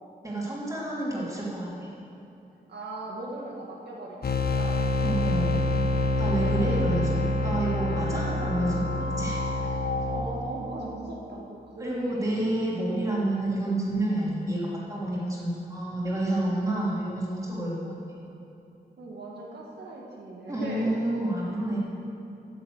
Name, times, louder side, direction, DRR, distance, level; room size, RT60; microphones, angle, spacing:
voice 1, 0.2-1.9 5.0-5.6 6.2-8.8 9.2-9.7 11.8-17.9 20.5-21.8, right 1 dB, 20° right, -6 dB, 3.1 m, -29 dB
voice 2, 2.7-4.8 6.2-7.0 7.9-8.5 10.1-12.4 12.9-13.1 19.0-21.0, right 2 dB, 80° right, -2 dB, 1.8 m, -39 dB
sound 1, 4.2-10.2, left 2 dB, 65° left, 1.1 m, -26 dB
10.0 x 10.0 x 7.9 m, 2.7 s
wide cardioid pair, 155°, 17 cm